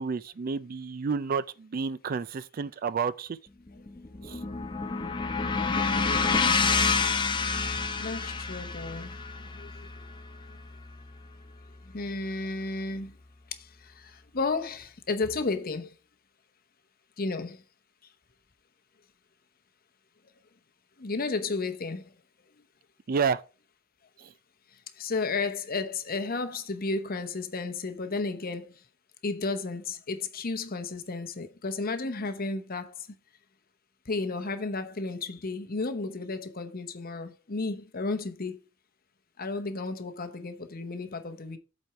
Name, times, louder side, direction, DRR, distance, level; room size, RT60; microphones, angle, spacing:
voice 1, 0.0-3.4 4.2-4.4 23.1-23.4 24.2-24.3, right 5 dB, 45° right, 0.4 m, -30 dB
sound 1, 3.7-12.0, left 4 dB, 25° left, 0.7 m, -29 dB
voice 2, 5.7-6.7 7.7-9.2 9.5-10.0 10.5-10.6 11.8-13.2 13.6-15.9 17.2-17.6 21.0-22.1 25.0-28.8 29.2-33.1 34.1-38.6 39.4-41.6, left 3 dB, 45° left, 0.9 m, -33 dB
8.0 x 4.3 x 4.5 m
head